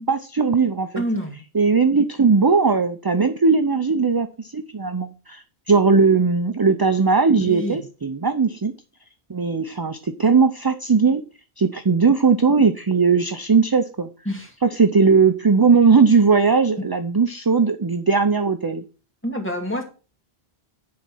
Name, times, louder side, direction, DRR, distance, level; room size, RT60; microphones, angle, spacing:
voice 1, 0.1-1.0 1.5-8.7 9.3-11.2 11.6-14.1 14.6-18.8, right 5 dB, 25° right, 8 dB, 0.5 m, -18 dB
voice 2, 1.0-1.4 7.4-7.8 14.3-14.5 19.2-19.8, equal, 10° left, 1 dB, 2.3 m, -27 dB
10.5 x 4.2 x 7.6 m, 0.35 s
omnidirectional pair, 1.1 m